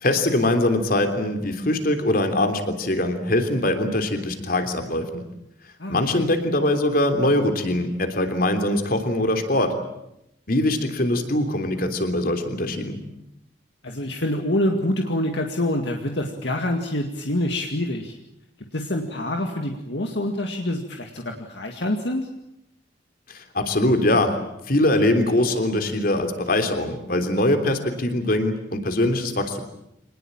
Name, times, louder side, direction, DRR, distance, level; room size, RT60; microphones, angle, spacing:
voice 1, 0.0-5.2 5.9-9.7 10.5-13.0 23.3-24.3 24.7-29.6, left 1 dB, 50° left, 7 dB, 3.3 m, -22 dB
voice 2, 5.8-6.2 13.8-18.1 18.7-22.3, left 1 dB, 65° left, 3 dB, 2.2 m, -26 dB
25.5 x 20.0 x 8.9 m, 0.82 s
head